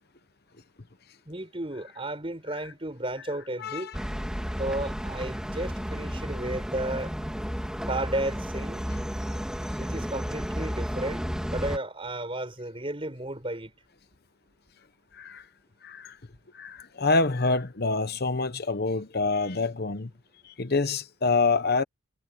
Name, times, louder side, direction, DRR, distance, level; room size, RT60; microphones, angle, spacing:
voice 1, 1.3-3.9 4.6-7.1 7.9-8.9 9.8-13.7, right 1 dB, 25° right, 4.5 m, -33 dB
voice 2, 3.6-3.9 15.1-15.5 15.8-16.2 16.5-20.1 20.4-21.8, left 3 dB, 45° left, 0.9 m, -26 dB
sound 1, 3.9-11.8, equal, 5° right, 3.0 m, -32 dB
head